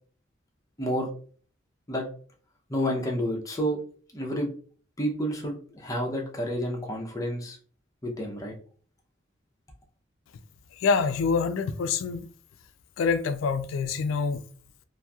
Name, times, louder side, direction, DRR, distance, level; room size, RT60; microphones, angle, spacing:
voice 1, 0.8-1.1 1.9-2.1 2.7-3.8 4.1-4.5 5.0-7.6 8.0-8.5, equal, 15° left, 0.6 m, -29 dB
voice 2, 10.8-12.2 13.0-14.4, left 5 dB, 80° left, 0.3 m, -26 dB
2.8 x 2.5 x 2.3 m
head